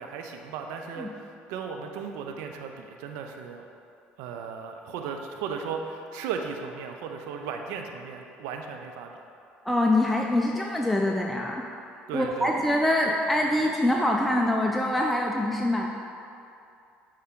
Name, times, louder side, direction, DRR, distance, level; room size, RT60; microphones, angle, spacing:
voice 1, 0.0-3.7 4.2-9.2 12.1-12.7, right 6 dB, 70° right, 4 dB, 0.6 m, -36 dB
voice 2, 9.6-11.6 12.1-15.9, left 1 dB, ahead, -1 dB, 0.5 m, -24 dB
7.2 x 4.8 x 3.7 m, 2.6 s
hypercardioid pair, 60°, 5 cm